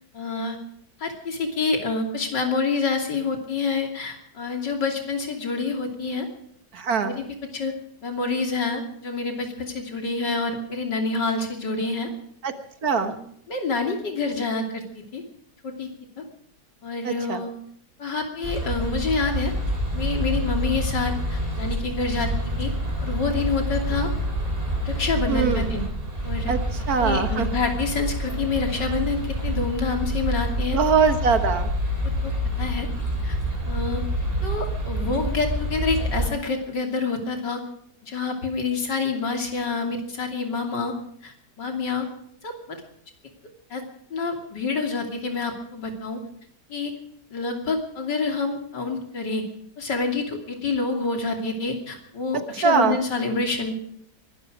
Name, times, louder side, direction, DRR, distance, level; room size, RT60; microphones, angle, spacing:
voice 1, 0.1-0.6 1.0-6.3 7.0-7.2 7.5-7.7 8.0-12.1 13.0-13.2 13.5-15.2 15.6-15.9 16.2-16.3 16.8-17.5 18.0-19.5 19.9-22.7 23.0-24.1 24.8-25.9 26.2-26.5 27.0-30.8 32.2-32.3 32.6-32.9 33.2-33.4 33.7-34.0 34.4-37.6 38.0-40.9 41.2-42.1 42.4-42.8 43.7-43.8 44.1-46.2 46.7-46.9 47.3-49.4 49.8-53.7, left 4 dB, 85° left, 3 dB, 3.5 m, -27 dB
voice 2, 6.7-7.2 12.4-12.5 12.8-13.1 17.0-17.4 25.3-25.7 26.5-27.6 30.7-31.7 52.6-53.0, right 5 dB, 60° right, 9 dB, 1.9 m, -22 dB
sound 1, 18.4-36.3, equal, 30° right, 3.4 m, -27 dB
23.0 x 12.5 x 4.8 m, 0.67 s
omnidirectional pair, 1.8 m